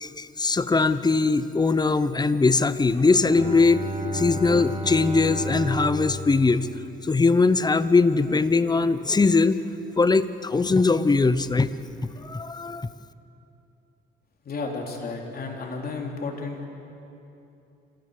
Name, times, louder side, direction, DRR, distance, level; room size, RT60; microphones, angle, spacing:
voice 1, 0.0-3.9 4.1-6.7 7.0-9.6 10.0-11.7 12.2-12.9, left 3 dB, 20° left, 14 dB, 0.8 m, -21 dB
Bowed string instrument, 3.2-7.7, equal, 30° right, 1.6 m, -33 dB
voice 2, 14.5-16.7, left 3 dB, 50° left, 1 dB, 3.6 m, -32 dB
27.5 x 15.5 x 6.7 m, 2.8 s
cardioid pair, 90°, 20 cm